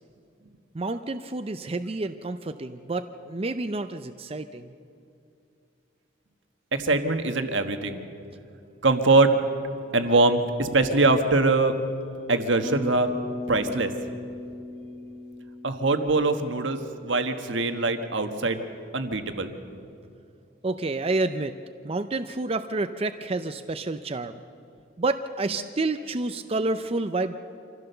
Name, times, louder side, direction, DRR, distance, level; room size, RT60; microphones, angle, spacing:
voice 1, 0.7-4.7 20.6-21.6 21.8-24.4 25.0-27.4, right 2 dB, 30° right, 9 dB, 0.5 m, -29 dB
voice 2, 6.7-8.0 8.8-9.3 9.9-11.7 12.3-13.1 13.5-13.9 15.6-18.6 18.9-19.5, right 3 dB, 75° right, 7 dB, 1.4 m, -22 dB
Bass guitar, 12.6-17.0, left 1 dB, ahead, 1.3 m, -37 dB
25.5 x 15.5 x 6.8 m, 2.5 s
head